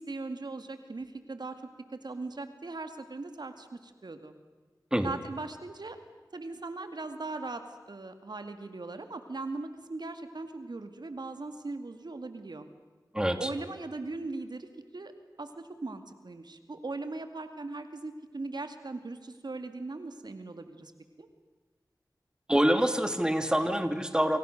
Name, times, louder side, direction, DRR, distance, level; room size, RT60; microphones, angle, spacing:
voice 1, 0.0-1.6 2.0-4.3 5.0-6.0 6.3-12.7 13.4-15.1 15.4-20.9 21.2-21.3, right 3 dB, 70° right, 8 dB, 2.3 m, -39 dB
voice 2, 13.1-13.5 22.5-24.4, equal, 10° right, 8 dB, 2.6 m, -26 dB
28.5 x 26.5 x 6.7 m, 1.4 s
wide cardioid pair, 45°, 7 cm